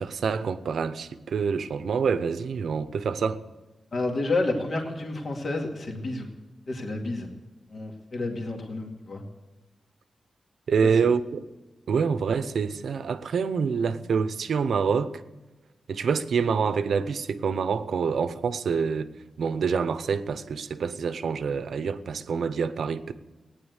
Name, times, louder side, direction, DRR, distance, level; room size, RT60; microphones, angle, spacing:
voice 1, 0.0-3.4 10.7-11.4 11.9-15.2 15.9-19.1 19.4-23.1, right 6 dB, 75° right, 0.8 m, -26 dB
voice 2, 3.9-6.3 6.7-7.3 7.7-9.2 10.8-10.9, left 2 dB, 50° left, 2.3 m, -30 dB
17.5 x 10.0 x 8.1 m
wide cardioid pair, 140°, 0 cm